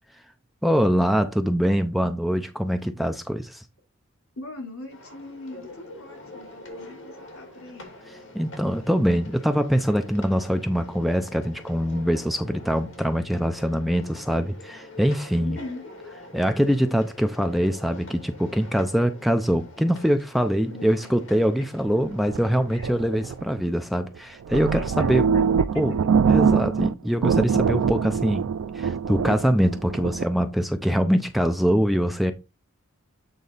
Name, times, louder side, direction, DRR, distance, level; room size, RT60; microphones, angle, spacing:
voice 1, 0.6-3.6 8.3-15.6 16.3-25.3 25.8-25.9 26.2-28.4 28.7-32.3, equal, ahead, 0.5 m, -23 dB
voice 2, 4.4-7.9 15.4-15.9 20.7-21.2 22.7-22.9 24.8-26.0, left 1 dB, 80° left, 3.6 m, -40 dB
sound 1, 4.9-23.6, left 2 dB, 65° left, 2.5 m, -45 dB
sound 2, 21.9-23.7 24.2-24.3 24.5-26.9 27.2-30.2, right 6 dB, 85° right, 0.4 m, -23 dB
8.4 x 4.0 x 4.0 m
head